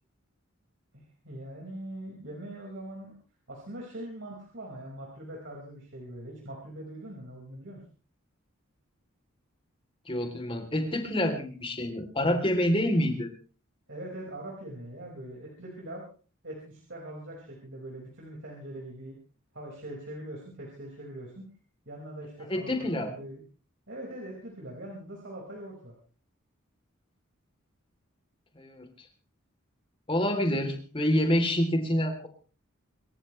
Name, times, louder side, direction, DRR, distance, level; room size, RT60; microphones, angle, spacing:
voice 1, 0.9-3.1 3.5-7.8 13.9-16.0 16.4-19.1 19.5-21.5 21.8-22.7 23.0-23.4 23.9-25.9, right 1 dB, 60° right, -2 dB, 5.2 m, -42 dB
voice 2, 10.1-13.3 22.5-23.1 28.5-28.9 30.1-32.3, left 1 dB, 25° left, 5 dB, 3.3 m, -27 dB
26.5 x 14.5 x 3.2 m, 0.39 s
head